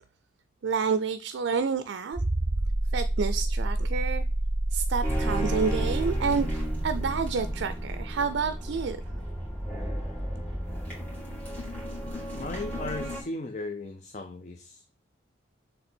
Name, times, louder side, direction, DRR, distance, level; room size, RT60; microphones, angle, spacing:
voice 1, 0.6-2.2 2.9-4.2 4.7-9.0, right 5 dB, 80° right, 0.4 m, -29 dB
sound 1, 2.1-10.6 12.1-12.2, right 1 dB, 25° right, 0.7 m, -29 dB
sound 2, 5.0-13.2, equal, 10° left, 2.2 m, -34 dB
voice 2, 12.4-14.8, left 2 dB, 40° left, 0.5 m, -36 dB
6.7 x 3.3 x 4.4 m
head